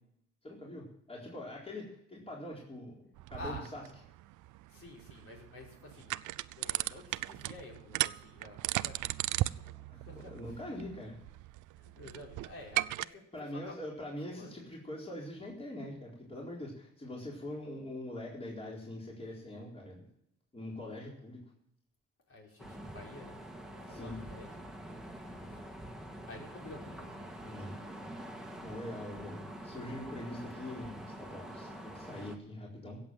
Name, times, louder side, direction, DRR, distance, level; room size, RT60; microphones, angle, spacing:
voice 1, 0.4-2.9 3.3-3.8 9.9-11.2 13.3-20.0 20.5-21.4 23.9-24.2 27.4-27.8 28.6-33.0, left 1 dB, 20° left, -3 dB, 4.1 m, -43 dB
sound 1, 3.2-13.0, right 17 dB, 85° right, 0.5 m, -37 dB
voice 2, 3.3-3.7 4.7-6.2 6.5-9.1 9.6-10.6 11.8-13.2 13.5-13.8 14.2-14.6 22.3-23.4 23.8-24.5 25.5-25.6 26.1-27.3, left 2 dB, 50° left, -1 dB, 5.4 m, -50 dB
sound 2, 22.6-32.4, right 1 dB, ahead, 2.0 m, -46 dB
16.5 x 7.7 x 7.7 m, 0.75 s
cardioid pair, 90°, 30 cm